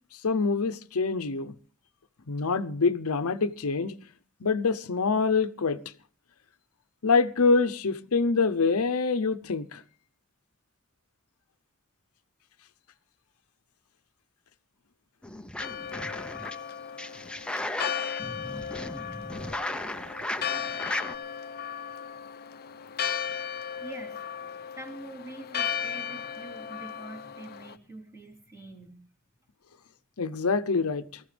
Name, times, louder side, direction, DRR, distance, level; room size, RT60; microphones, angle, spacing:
voice 1, 0.2-1.5 2.3-3.9 4.4-5.8 7.0-9.8 30.2-31.2, left 4 dB, 80° left, 0.7 m, -25 dB
sound 1, 15.2-16.6 17.0-21.2, left 1 dB, 5° left, 0.6 m, -36 dB
Church bell, 15.6-27.8, left 8 dB, 45° left, 0.6 m, -36 dB
voice 2, 23.8-24.3 24.7-29.0, right 2 dB, 15° right, 3.4 m, -45 dB
19.0 x 14.5 x 3.4 m
head